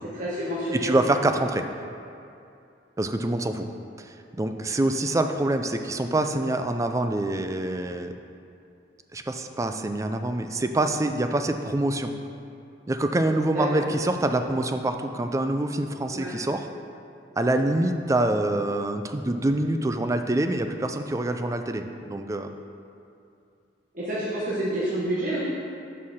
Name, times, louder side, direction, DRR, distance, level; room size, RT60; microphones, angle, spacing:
voice 1, 0.1-1.0 13.5-13.8 16.1-16.3 23.9-25.4, right 1 dB, 50° right, -8 dB, 1.3 m, -28 dB
voice 2, 0.7-1.7 3.0-3.7 4.0-8.1 9.1-12.1 12.9-16.7 17.4-22.5, right 1 dB, 20° right, 7 dB, 0.4 m, -25 dB
6.5 x 5.6 x 6.3 m, 2.6 s
head